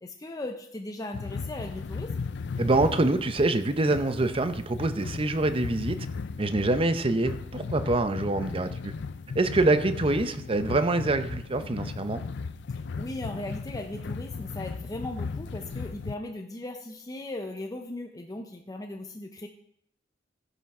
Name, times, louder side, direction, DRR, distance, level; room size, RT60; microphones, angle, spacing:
voice 1, 0.0-2.2 13.0-19.5, left 1 dB, 20° left, 4 dB, 0.6 m, -38 dB
sound 1, 1.1-16.1, left 4 dB, 65° left, 0.5 m, -36 dB
voice 2, 2.6-6.1 6.4-8.9 9.4-12.2, right 2 dB, 30° right, 10 dB, 0.6 m, -25 dB
15.0 x 5.9 x 4.3 m, 0.71 s
head